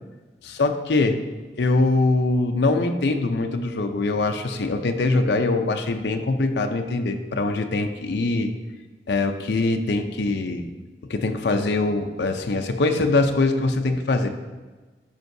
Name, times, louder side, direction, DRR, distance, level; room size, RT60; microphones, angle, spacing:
voice 1, 0.4-1.2 1.6-8.5 9.1-10.7 11.1-14.3, left 2 dB, 75° left, 5 dB, 0.5 m, -23 dB
12.5 x 5.2 x 2.7 m, 1.3 s
head